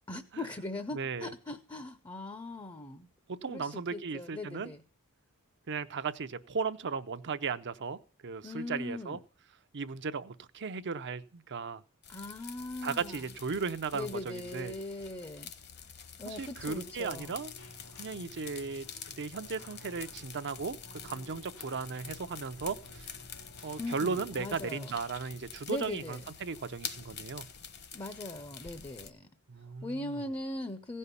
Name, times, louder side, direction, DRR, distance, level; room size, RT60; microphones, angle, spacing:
voice 1, 0.1-3.1 3.5-4.8 8.4-9.2 12.1-13.2 13.9-15.5 16.2-17.4 23.8-25.0 25.7-26.2 27.9-29.3 29.8-31.0, left 2 dB, 20° left, 0.7 m, -40 dB
voice 2, 0.9-1.3 3.3-4.7 5.7-9.2 9.7-11.8 12.8-14.8 16.2-17.5 18.0-20.8 21.0-23.1 23.6-27.5 29.5-30.2, right 5 dB, 55° right, 0.7 m, -36 dB
sound 1, 12.0-29.1, left 7 dB, 50° left, 1.2 m, -47 dB
Keyboard (musical), 16.6-24.6, equal, 90° left, 2.8 m, -53 dB
16.0 x 5.5 x 8.3 m
head